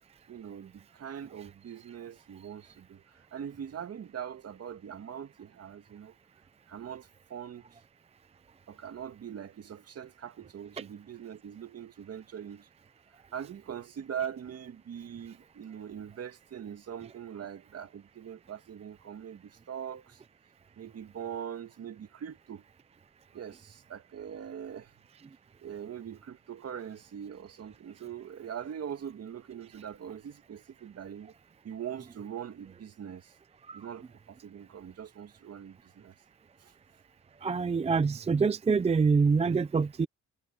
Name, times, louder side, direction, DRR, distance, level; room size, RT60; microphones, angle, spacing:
voice 1, 0.3-6.2 6.7-7.7 8.7-12.7 13.3-20.2 20.8-22.6 23.3-24.9 25.6-31.3 31.6-33.3 33.7-36.1 36.6-36.7, right 8 dB, 55° right, 2.2 m, -42 dB
voice 2, 37.4-40.1, right 5 dB, 20° right, 0.5 m, -25 dB
cardioid pair, 90°, 30 cm